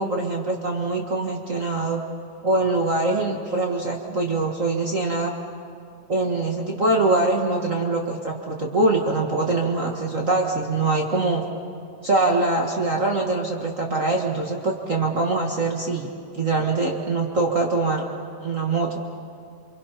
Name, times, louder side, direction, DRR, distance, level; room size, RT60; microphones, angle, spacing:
voice 1, 0.0-2.0 2.4-5.3 6.1-11.4 12.0-16.1 16.3-18.1 18.4-19.0, right 3 dB, 50° right, 0 dB, 0.9 m, -23 dB
28.5 x 24.5 x 5.8 m, 2.5 s
omnidirectional pair, 4.0 m